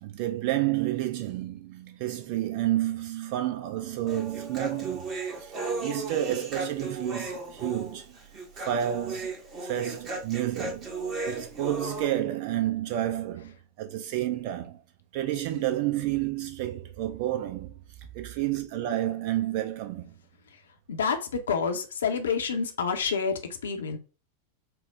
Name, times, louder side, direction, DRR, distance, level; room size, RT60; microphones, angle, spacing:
voice 1, 0.0-5.1 5.4-5.5 5.8-8.1 8.6-9.3 9.6-10.9 11.2-14.8 15.1-17.8 18.1-20.1, right 13 dB, 45° right, 0.7 m, -30 dB
Human voice, 4.1-12.1, right 3 dB, 30° right, 1.1 m, -35 dB
voice 2, 20.9-24.0, left 5 dB, 65° left, 0.6 m, -28 dB
4.5 x 2.1 x 3.6 m
figure-of-eight pair, 90°, 0 cm